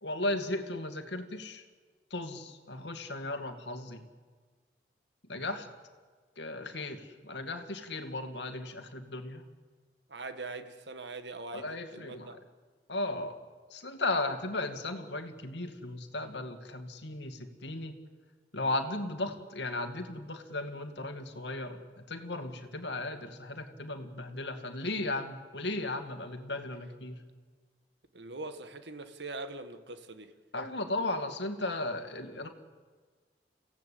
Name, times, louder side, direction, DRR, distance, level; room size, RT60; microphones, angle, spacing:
voice 1, 0.0-1.6 2.1-4.0 5.3-5.7 6.4-9.4 11.5-12.4 12.9-13.4 13.7-17.9 18.5-27.2 30.5-32.5, left 2 dB, 85° left, 2.3 m, -36 dB
voice 2, 10.1-12.4 28.1-30.3, right 3 dB, 85° right, 1.7 m, -42 dB
29.5 x 17.0 x 8.6 m
head